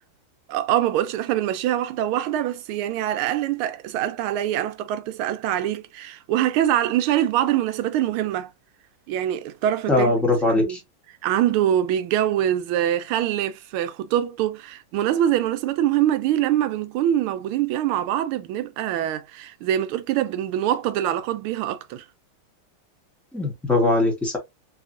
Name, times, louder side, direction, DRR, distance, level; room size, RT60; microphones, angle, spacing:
voice 1, 0.5-8.5 9.1-10.1 10.5-10.8 11.2-22.0, right 11 dB, 80° right, 1.4 m, -24 dB
voice 2, 9.9-10.8 23.3-24.4, left 2 dB, ahead, 0.6 m, -21 dB
3.5 x 3.1 x 2.5 m
omnidirectional pair, 2.4 m